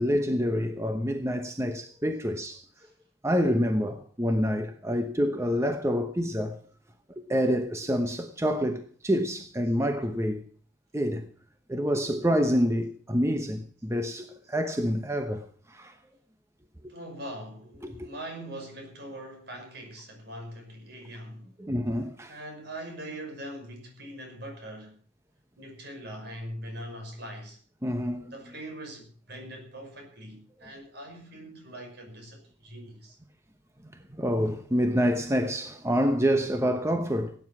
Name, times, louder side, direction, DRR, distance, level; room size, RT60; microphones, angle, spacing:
voice 1, 0.0-2.6 3.2-6.6 7.3-10.4 10.9-11.3 11.7-15.9 16.8-16.9 17.8-18.1 21.6-22.3 27.8-28.3 34.2-37.3, equal, 15° right, 1.0 m, -27 dB
voice 2, 16.9-21.5 22.3-25.0 25.6-27.6 28.3-33.2, right 1 dB, 60° right, 5.9 m, -42 dB
17.5 x 9.7 x 6.0 m
head